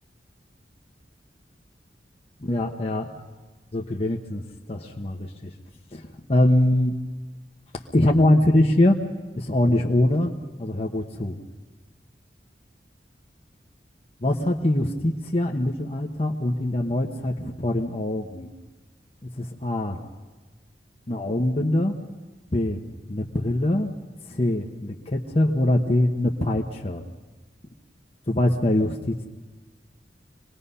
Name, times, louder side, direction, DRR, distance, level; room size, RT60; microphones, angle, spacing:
voice 1, 2.4-3.1 3.7-5.5 5.9-7.0 7.9-9.0 9.3-10.3 10.6-11.4 14.2-18.5 19.4-20.0 21.1-22.0 22.5-22.8 23.1-23.9 24.3-27.0 28.3-29.2, left 1 dB, 35° left, 1 dB, 1.1 m, -23 dB
25.0 x 20.0 x 5.6 m, 1.2 s
head